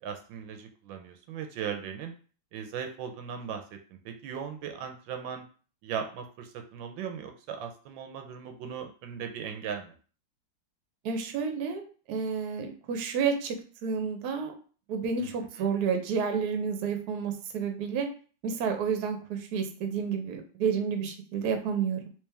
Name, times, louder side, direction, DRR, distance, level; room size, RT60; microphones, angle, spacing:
voice 1, 0.0-2.1 2.5-5.4 5.8-9.9 15.2-15.3 15.6-15.7, right 7 dB, 85° right, 5 dB, 1.4 m, -38 dB
voice 2, 11.0-13.6 13.8-14.5 14.9-18.1 18.4-22.1, right 6 dB, 65° right, 4 dB, 1.1 m, -30 dB
3.2 x 3.1 x 3.4 m, 0.39 s
omnidirectional pair, 2.0 m